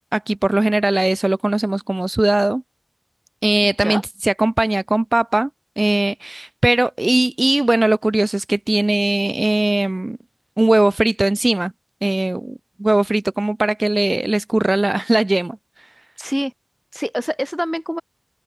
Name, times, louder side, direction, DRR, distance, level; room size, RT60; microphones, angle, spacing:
voice 1, 0.1-2.6 3.4-5.5 5.8-10.2 10.6-11.7 12.0-15.6, right 2 dB, 50° right, 3.8 m, -19 dB
voice 2, 16.2-16.5 16.9-18.0, equal, ahead, 6.5 m, -25 dB
open air
wide cardioid pair, 45°, 0 cm